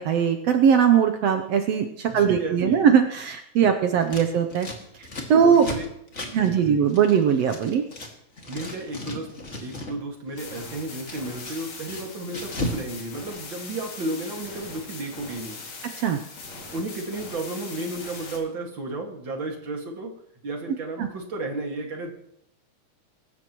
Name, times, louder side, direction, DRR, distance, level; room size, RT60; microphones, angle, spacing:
voice 1, 0.0-4.7 5.0-5.7 6.3-7.8 16.0-16.2 21.0-21.1, right 7 dB, 70° right, 6 dB, 1.7 m, -20 dB
voice 2, 2.1-2.9 5.5-5.9 6.2-6.9 8.5-9.3 9.6-15.6 16.7-20.1 20.4-22.1, right 2 dB, 40° right, 2 dB, 2.6 m, -33 dB
Scissors, 4.0-8.1 8.4-10.0 10.3-12.8 13.1-14.0, left 1 dB, 25° left, 2.1 m, -36 dB
sound 1, 10.4-18.4, left 3 dB, 60° left, 3.7 m, -40 dB
23.5 x 13.0 x 3.1 m, 0.75 s
omnidirectional pair, 3.5 m